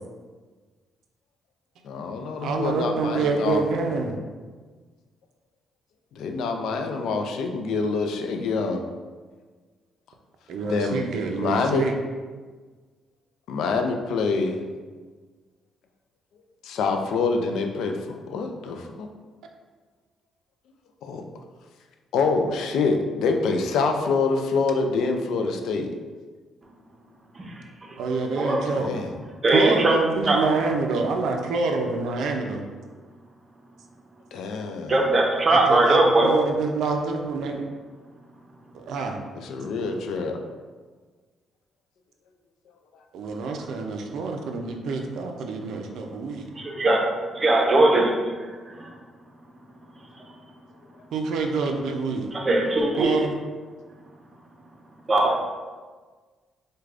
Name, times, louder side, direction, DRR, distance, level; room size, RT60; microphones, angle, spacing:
voice 1, 1.8-3.6 6.1-8.8 10.7-11.0 11.4-11.8 13.5-14.6 16.6-19.1 21.0-21.2 22.1-25.9 28.7-29.1 34.3-35.0 39.4-40.4, left 4 dB, 80° left, 4 dB, 0.3 m, -26 dB
voice 2, 2.4-4.2 10.5-11.9 28.0-29.0 29.5-32.6 35.5-37.6 38.7-39.2 43.1-46.4 51.1-52.3 53.0-53.3, right 4 dB, 75° right, 3 dB, 0.4 m, -27 dB
voice 3, 29.4-30.0 30.3-30.4 34.9-36.3 46.6-47.1 47.3-48.3 48.8-48.9 52.3-53.1 55.1-55.4, right 2 dB, 35° right, 0 dB, 0.6 m, -20 dB
4.6 x 2.2 x 2.4 m, 1.4 s
cardioid pair, 90°, 0 cm